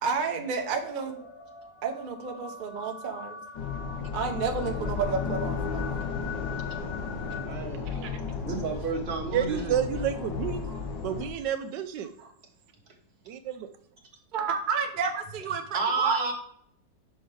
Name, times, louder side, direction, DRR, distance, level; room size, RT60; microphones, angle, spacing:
voice 1, 0.0-1.3 1.8-3.4 4.1-5.9 7.9-8.1 14.3-16.2, right 5 dB, 65° right, 5 dB, 0.5 m, -30 dB
sound 1, 0.6-7.5, left 6 dB, 60° left, 1.0 m, -43 dB
sound 2, 3.5-11.3, left 5 dB, 85° left, 1.6 m, -34 dB
voice 2, 7.4-8.2 8.4-9.8 10.7-10.8 12.2-12.3 15.7-16.3, right 4 dB, 35° right, 0 dB, 1.4 m, -31 dB
voice 3, 9.3-10.6 11.0-12.1 13.3-13.7, right 9 dB, 80° right, 9 dB, 1.2 m, -29 dB
5.8 x 5.4 x 3.3 m, 0.64 s
omnidirectional pair, 1.9 m